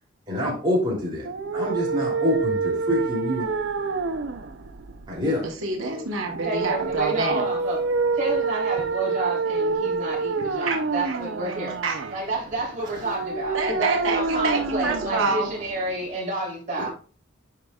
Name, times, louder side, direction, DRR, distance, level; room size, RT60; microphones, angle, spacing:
voice 1, 0.3-1.3 1.5-3.5 5.1-5.4 16.8-16.9, left 1 dB, 25° right, -5 dB, 2.8 m, -26 dB
sound 1, 1.2-16.2, right 4 dB, 70° right, 0.5 m, -28 dB
voice 2, 5.4-7.5 10.6-10.8 11.0-11.2 11.5-11.6 11.8-12.1 13.5-15.5, right 3 dB, 85° right, 1 dB, 1.1 m, -27 dB
voice 3, 6.4-7.8 8.1-11.8 12.1-16.9, right 2 dB, 40° right, -5 dB, 3.4 m, -30 dB
10.0 x 4.9 x 2.3 m, 0.39 s
head